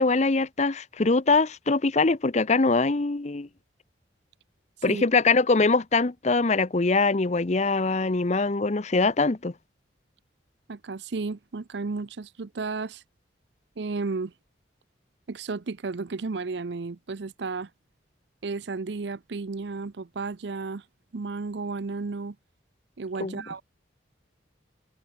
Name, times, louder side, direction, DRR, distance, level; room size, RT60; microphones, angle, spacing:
voice 1, 0.0-3.5 4.8-9.5 23.2-23.4, left 3 dB, 35° left, 0.7 m, -23 dB
voice 2, 10.7-13.0 13.8-14.3 15.3-17.7 18.4-20.8 21.1-22.4 23.0-23.6, right 4 dB, 65° right, 0.6 m, -33 dB
head